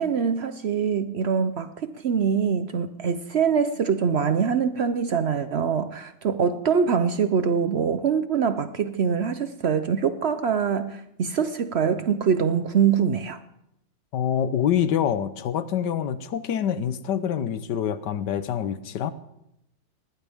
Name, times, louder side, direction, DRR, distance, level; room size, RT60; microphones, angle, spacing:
voice 1, 0.0-13.4, right 6 dB, 70° right, 0.6 m, -24 dB
voice 2, 14.1-19.1, left 9 dB, 70° left, 1.5 m, -26 dB
20.0 x 17.5 x 3.6 m
omnidirectional pair, 2.0 m